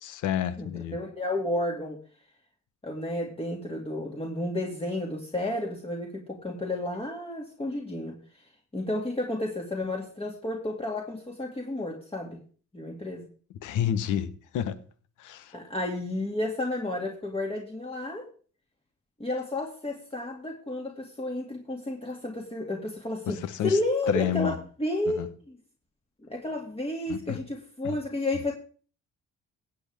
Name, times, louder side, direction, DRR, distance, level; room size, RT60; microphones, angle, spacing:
voice 1, 0.0-1.0 13.6-14.3 14.5-14.8 15.2-15.6 23.3-23.8 24.1-24.5 25.2-25.3 27.1-27.4 27.8-28.0, left 10 dB, 85° left, 1.2 m, -29 dB
voice 2, 0.6-2.0 2.8-8.2 8.7-12.4 12.7-13.3 15.5-18.3 19.2-25.2 25.5-25.6 26.3-28.5, left 1 dB, 20° left, 2.5 m, -31 dB
16.0 x 8.1 x 3.6 m
cardioid pair, 90°, 30 cm